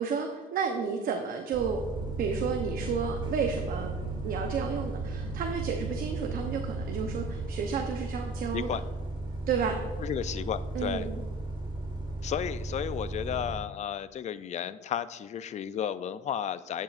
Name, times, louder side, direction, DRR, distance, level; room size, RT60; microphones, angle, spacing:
voice 1, 0.0-1.8 2.2-4.0 4.2-8.7 9.5-9.8 10.7-11.2, right 6 dB, 60° right, 4 dB, 0.8 m, -31 dB
Bus, 1.5-13.6, right 2 dB, 30° right, 1.8 m, -36 dB
sound 1, 1.9-7.5, right 6 dB, 80° right, 0.4 m, -40 dB
voice 2, 10.0-11.1 12.2-16.8, left 9 dB, 45° left, 14 dB, 0.4 m, -33 dB
10.5 x 7.5 x 2.5 m, 1.4 s
cardioid pair, 110°, 17 cm